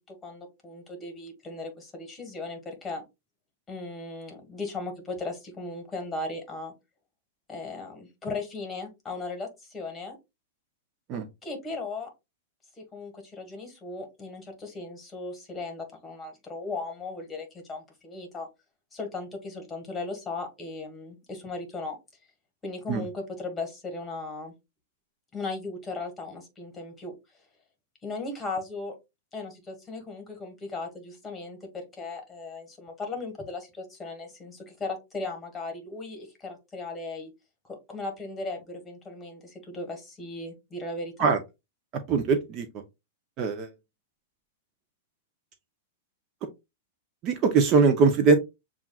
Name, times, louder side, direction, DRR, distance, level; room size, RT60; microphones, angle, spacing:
voice 1, 0.1-3.0 3.7-6.7 7.5-10.2 11.4-12.1 12.8-18.5 18.9-22.0 22.6-24.5 25.3-27.1 28.0-28.9 29.3-37.3 37.7-41.3, left 3 dB, 15° left, 1.5 m, -37 dB
voice 2, 42.1-42.7 43.4-43.7 47.2-48.4, right 5 dB, 35° right, 0.6 m, -21 dB
7.0 x 2.4 x 2.3 m
hypercardioid pair, 140°, 0 cm